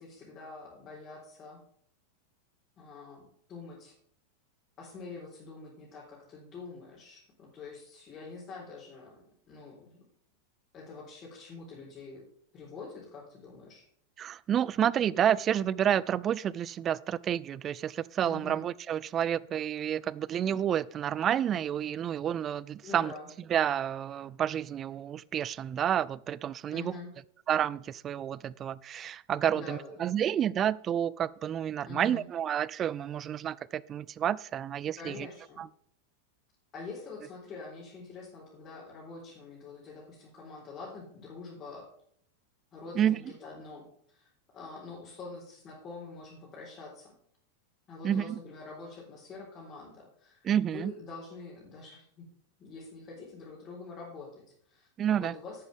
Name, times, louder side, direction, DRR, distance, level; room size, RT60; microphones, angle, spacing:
voice 1, 0.0-1.6 2.8-3.9 4.8-10.0 10.7-12.2 12.5-13.9 18.2-18.6 22.8-23.3 26.7-27.1 29.5-30.0 31.8-32.2 35.0-35.6 36.7-41.9 42.7-47.1 47.9-52.3 52.6-54.9 55.2-55.6, left 4 dB, 25° left, 3.9 m, -46 dB
voice 2, 14.2-23.1 23.5-26.9 27.5-35.3 35.6-35.7 43.0-43.2 48.0-48.4 50.4-50.9 55.0-55.3, right 9 dB, 25° right, 0.3 m, -30 dB
11.0 x 9.0 x 3.5 m
figure-of-eight pair, 90°, 0 cm